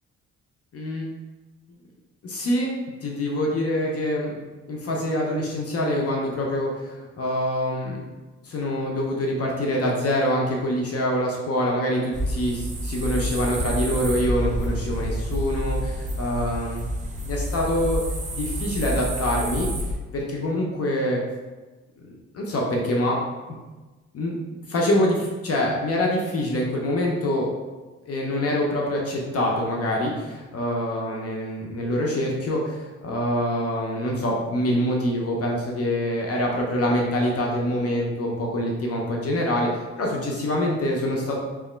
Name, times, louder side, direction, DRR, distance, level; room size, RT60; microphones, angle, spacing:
voice 1, 0.7-1.1 1.7-1.8 2.2-2.7 3.0-4.3 4.7-8.0 8.4-16.8 17.2-18.0 18.3-19.7 20.1-21.2 22.3-23.2 24.1-24.4 24.7-27.5 28.0-39.7 40.0-41.4, left 1 dB, 50° left, -1 dB, 0.7 m, -25 dB
sound 1, 12.1-20.0, equal, 25° right, 0.8 m, -28 dB
3.5 x 2.9 x 3.3 m, 1.2 s
cardioid pair, 90°, 30 cm